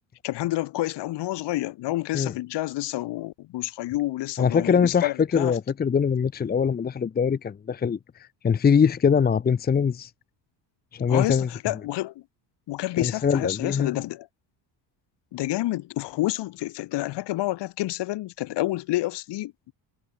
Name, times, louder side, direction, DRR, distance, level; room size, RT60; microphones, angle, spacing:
voice 1, 0.2-5.6 11.1-12.2 12.7-14.3 15.3-19.7, left 16 dB, 65° left, 6.8 m, -29 dB
voice 2, 4.4-8.0 8.4-10.1 10.9-11.5 13.0-13.9, left 6 dB, 20° left, 1.0 m, -22 dB
cardioid pair, 150°, 45 cm